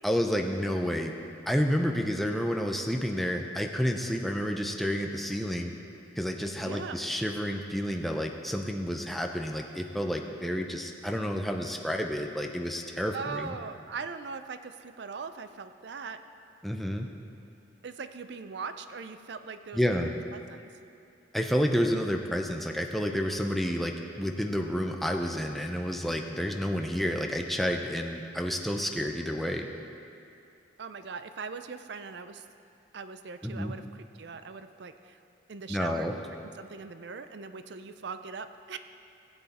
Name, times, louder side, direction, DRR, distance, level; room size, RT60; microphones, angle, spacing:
voice 1, 0.0-1.1 1.5-5.7 6.2-13.5 16.6-17.1 19.7-20.1 21.3-29.7 33.4-33.7 35.7-36.1, equal, ahead, 2 dB, 0.5 m, -30 dB
voice 2, 6.6-7.0 13.1-16.2 17.8-20.7 30.8-32.5 32.9-35.2 35.5-36.1 36.6-38.8, right 5 dB, 60° right, 10 dB, 0.5 m, -40 dB
16.0 x 7.9 x 4.2 m, 2.6 s
head